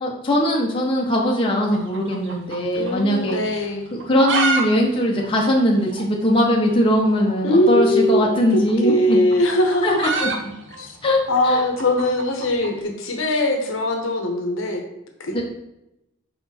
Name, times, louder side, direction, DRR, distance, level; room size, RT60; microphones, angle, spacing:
voice 1, 0.0-3.4 3.9-9.2 9.8-10.3 11.0-11.6 15.3-15.4, equal, 25° left, -1 dB, 0.8 m, -20 dB
sound 1, 1.7-3.0 3.3-3.4 3.9-4.6 4.9-5.0 5.2-5.3 5.9-6.0 7.2-7.4 8.5-12.7, right 3 dB, 55° right, 0.8 m, -26 dB
voice 2, 2.7-3.9 7.4-10.1 10.8-11.0 11.3-14.8 15.2-15.4, left 1 dB, 65° left, 4 dB, 0.9 m, -21 dB
5.5 x 4.1 x 4.2 m, 0.87 s
head